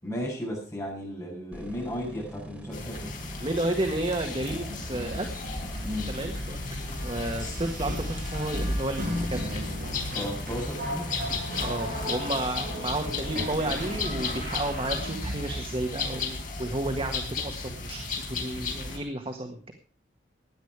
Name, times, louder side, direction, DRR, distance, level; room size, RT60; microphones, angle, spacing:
voice 1, 0.0-3.2 5.8-6.1 10.1-11.1, equal, 20° left, -2 dB, 7.4 m, -34 dB
sound 1, 1.5-15.0, equal, 5° right, 3.7 m, -42 dB
sound 2, 2.7-19.0, left 3 dB, 50° left, 4.5 m, -35 dB
voice 2, 3.4-5.3 6.1-6.6 7.0-9.6 11.6-19.7, right 1 dB, 30° right, 4 dB, 1.6 m, -32 dB
sound 3, 4.5-15.7, equal, 55° right, 5.3 m, -36 dB
16.5 x 10.5 x 4.8 m, 0.38 s
head